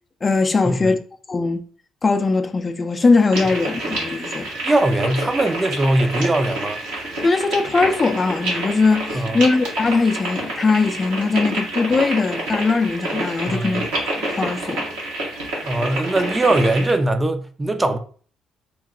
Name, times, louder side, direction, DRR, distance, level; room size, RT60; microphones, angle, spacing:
voice 1, 0.2-1.0 1.3-1.6 2.0-4.5 7.2-13.9 14.2-14.9, left 3 dB, 35° left, 0.4 m, -20 dB
sound 1, 3.3-16.9, right 1 dB, 80° right, 1.1 m, -28 dB
voice 2, 4.6-6.8 9.2-9.4 13.5-13.8 15.6-18.0, right 2 dB, 20° right, 0.5 m, -20 dB
2.9 x 2.1 x 3.8 m
hypercardioid pair, 50°, 0 cm